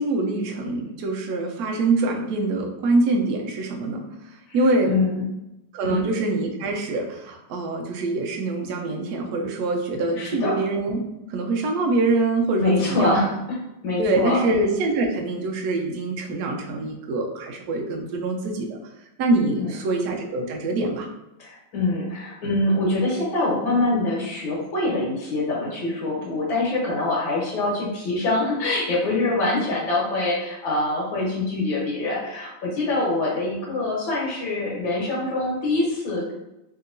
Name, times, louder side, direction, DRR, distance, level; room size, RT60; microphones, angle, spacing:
voice 1, 0.0-4.0 4.5-4.9 5.7-11.0 11.3-13.2 14.0-18.8 19.2-21.1, right 2 dB, 90° right, 1 dB, 0.8 m, -24 dB
voice 2, 4.8-5.3 5.8-6.0 10.2-10.6 12.6-13.6 13.8-14.5 19.6-19.8 21.4-36.3, left 2 dB, 70° left, -5 dB, 1.7 m, -24 dB
3.5 x 2.8 x 2.6 m, 0.93 s
omnidirectional pair, 2.3 m